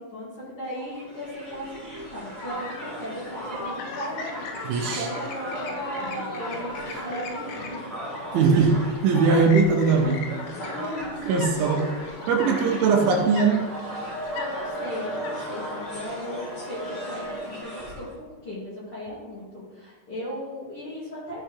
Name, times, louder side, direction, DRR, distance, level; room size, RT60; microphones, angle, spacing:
voice 1, 0.0-7.8 10.5-11.4 14.3-21.4, equal, 40° left, -10 dB, 2.3 m, -37 dB
Crowd, 0.7-18.1, equal, 20° left, 1.7 m, -36 dB
Chirp tweet, 2.5-17.6, left 5 dB, 75° left, 3.3 m, -41 dB
voice 2, 4.6-5.1 8.3-10.3 11.3-11.8 12.3-13.6, right 4 dB, 80° right, 2 dB, 3.1 m, -20 dB
13.0 x 6.6 x 3.2 m, 1.4 s
omnidirectional pair, 5.8 m